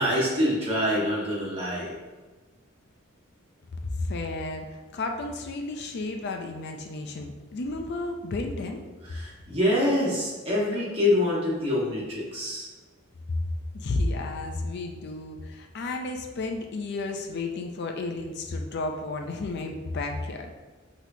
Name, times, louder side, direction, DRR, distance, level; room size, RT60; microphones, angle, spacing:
voice 1, 0.0-1.9 9.1-12.7, left 1 dB, 30° right, -7 dB, 1.5 m, -25 dB
voice 2, 3.7-8.8 13.7-20.5, left 2 dB, 55° left, 4 dB, 0.4 m, -32 dB
6.0 x 3.0 x 2.7 m, 1.3 s
head